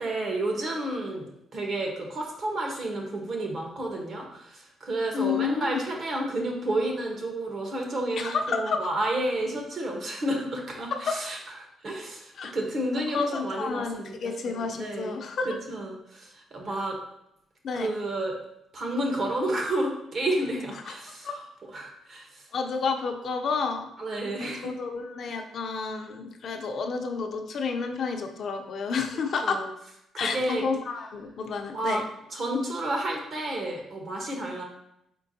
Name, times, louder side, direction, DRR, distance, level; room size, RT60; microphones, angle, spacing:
voice 1, 0.0-11.4 11.8-15.2 15.4-17.0 17.7-18.3 18.7-21.4 21.7-22.3 24.0-24.7 29.4-29.7 30.1-30.6 31.7-32.0 32.3-34.6, right 1 dB, 50° right, 0 dB, 1.1 m, -31 dB
voice 2, 5.1-5.8 8.2-8.8 10.9-11.1 12.4-12.5 13.1-15.6 17.6-17.9 20.8-20.9 21.2-21.3 22.5-23.9 24.4-29.6 30.2-32.0, left 5 dB, 60° left, 4 dB, 0.6 m, -30 dB
4.4 x 4.3 x 2.7 m, 0.79 s
cardioid pair, 90°, 0 cm